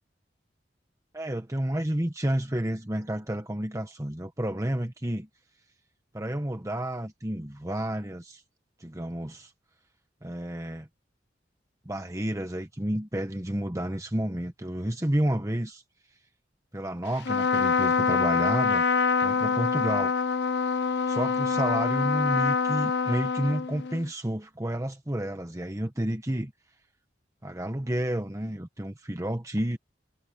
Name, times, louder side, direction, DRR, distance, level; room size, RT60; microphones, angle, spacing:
voice 1, 1.1-5.3 6.1-8.4 8.8-9.5 10.2-10.9 11.8-15.8 16.7-18.8 19.2-20.1 20.6-26.5 27.4-29.8, right 1 dB, 15° right, 1.2 m, -30 dB
Trumpet, 17.2-24.1, left 5 dB, 65° left, 0.6 m, -25 dB
head